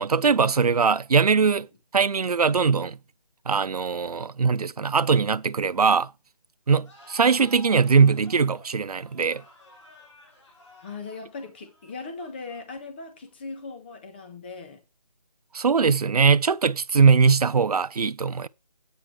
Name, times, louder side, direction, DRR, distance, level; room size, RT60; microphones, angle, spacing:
voice 1, 0.0-1.7 1.9-3.0 3.5-6.1 6.7-9.4 15.5-18.5, right 5 dB, 75° right, 0.7 m, -21 dB
sound 1, 6.8-13.3, equal, 50° left, 4.5 m, -52 dB
voice 2, 10.8-14.8, left 4 dB, 15° left, 1.3 m, -39 dB
9.2 x 7.8 x 4.6 m
figure-of-eight pair, 170°, 20 cm